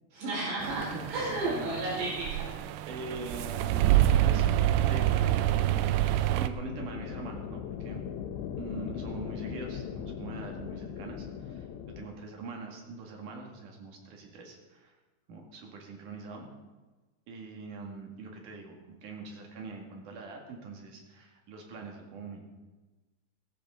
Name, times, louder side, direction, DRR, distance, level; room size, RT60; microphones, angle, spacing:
voice 1, 0.1-2.5, right 2 dB, 70° right, -7 dB, 6.7 m, -33 dB
sound 1, 0.6-6.5, right 13 dB, 90° right, 2.9 m, -27 dB
voice 2, 0.9-1.7 2.9-3.9 4.2-6.0 6.3-8.1 8.6-11.7 12.0-14.9 15.3-16.5 17.3-18.8 19.0-22.4, right 3 dB, 55° right, 1 dB, 3.2 m, -43 dB
sound 2, 6.6-12.1, left 8 dB, 80° left, 3.0 m, -39 dB
17.0 x 14.5 x 3.8 m, 1.2 s
omnidirectional pair, 5.0 m